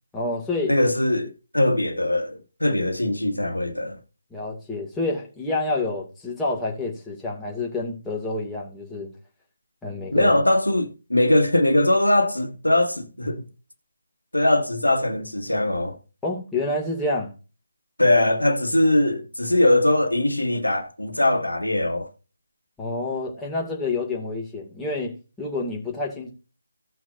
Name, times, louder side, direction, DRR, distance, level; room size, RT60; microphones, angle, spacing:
voice 1, 0.1-0.8 4.3-9.1 9.8-10.3 16.2-17.3 22.8-26.3, left 2 dB, 5° left, 2.4 m, -28 dB
voice 2, 0.7-4.0 10.1-13.5 14.3-16.0 18.0-22.1, left 1 dB, 80° left, 1.7 m, -21 dB
16.5 x 6.0 x 2.6 m
figure-of-eight pair, 150°, 0 cm